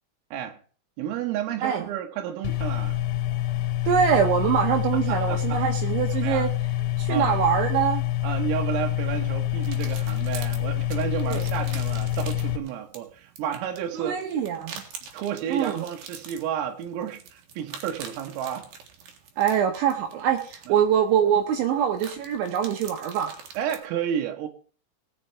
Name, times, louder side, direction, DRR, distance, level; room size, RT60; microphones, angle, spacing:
voice 1, 1.0-3.0 5.1-5.6 6.1-6.5 7.1-7.4 8.2-14.2 15.1-18.7 20.7-20.8 23.6-24.5, right 9 dB, 90° right, 4.0 m, -31 dB
sound 1, 2.4-12.6, left 12 dB, 90° left, 3.7 m, -27 dB
voice 2, 3.9-6.5 7.0-8.0 11.3-11.4 13.9-14.8 15.5-15.8 19.4-23.3, right 8 dB, 75° right, 3.2 m, -24 dB
sound 2, 9.6-23.8, right 6 dB, 60° right, 2.8 m, -45 dB
18.5 x 6.9 x 4.5 m
omnidirectional pair, 5.8 m